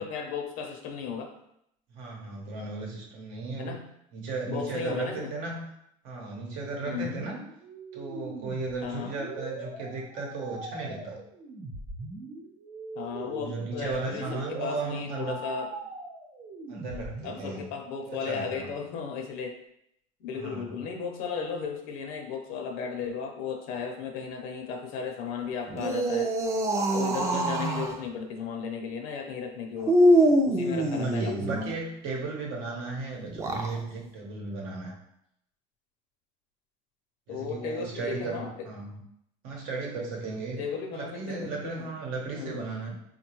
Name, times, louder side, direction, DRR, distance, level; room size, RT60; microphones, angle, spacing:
voice 1, 0.0-1.3 3.6-3.9 4.5-5.3 6.9-7.2 8.8-9.1 13.0-15.7 16.8-19.6 20.2-26.3 26.9-30.0 30.4-31.8 37.3-38.5 40.6-41.9 42.3-42.6, left 6 dB, 80° left, 3 dB, 0.6 m, -35 dB
voice 2, 1.9-3.8 4.1-5.7 6.0-7.4 7.9-11.2 13.2-15.4 16.7-17.7 18.1-18.7 20.3-20.9 30.7-35.0 37.3-39.0 39.4-40.7 40.9-42.9, right 3 dB, 85° right, -1 dB, 0.9 m, -35 dB
sound 1, 7.0-17.5, right 2 dB, 55° right, 0.8 m, -41 dB
sound 2, 25.7-28.0 29.8-31.6 33.2-33.8, right 1 dB, 20° right, 0.4 m, -24 dB
4.0 x 2.2 x 3.0 m, 0.74 s
cardioid pair, 145°, 14 cm